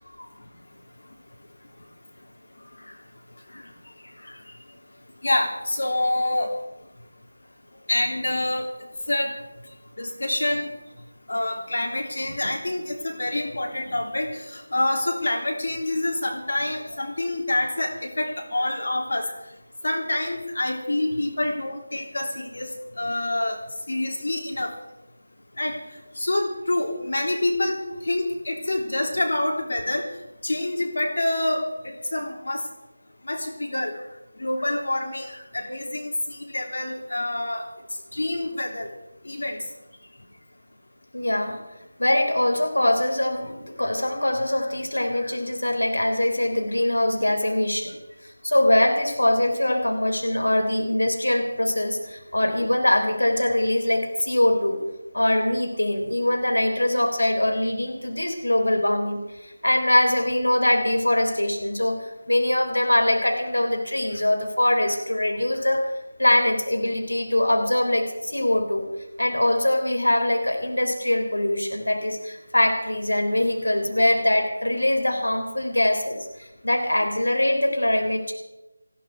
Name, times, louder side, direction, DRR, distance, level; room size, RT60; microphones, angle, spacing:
voice 1, 4.0-4.6 12.4-12.5 41.1-41.6 42.0-48.0 48.2-54.8 55.1-65.9 66.2-68.9 69.2-78.3, left 1 dB, 85° left, 4 dB, 3.7 m, -23 dB
voice 2, 5.2-6.5 7.9-8.7 9.1-9.3 10.0-10.7 11.3-19.3 19.8-22.7 23.0-23.6 23.9-24.7 25.6-25.8 26.2-30.1 30.4-32.6 33.2-33.9 34.4-37.6 38.1-38.9 39.2-39.6, left 1 dB, 65° left, 1 dB, 3.3 m, -26 dB
20.0 x 15.0 x 4.7 m, 0.99 s
figure-of-eight pair, 165°, 0 cm